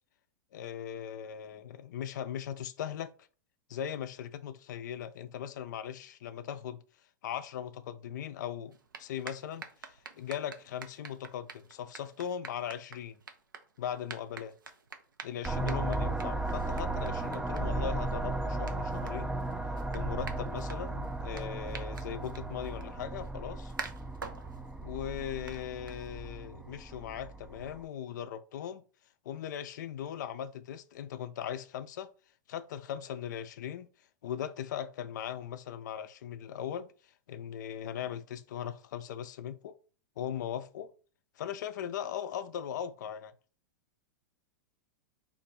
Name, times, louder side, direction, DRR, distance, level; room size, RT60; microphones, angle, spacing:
voice 1, 0.5-3.1 3.7-6.8 7.2-13.2 13.8-14.5 15.2-19.4 19.9-23.7 24.8-28.8 29.3-32.1 32.5-33.9 34.2-36.9 37.3-39.8 40.2-40.9 41.4-43.3, left 9 dB, 65° left, 0.4 m, -39 dB
sound 1, 8.7-26.4, right 5 dB, 85° right, 0.5 m, -49 dB
sound 2, 15.4-27.8, right 2 dB, 5° right, 0.3 m, -35 dB
2.5 x 2.2 x 4.0 m
hypercardioid pair, 100°, 11 cm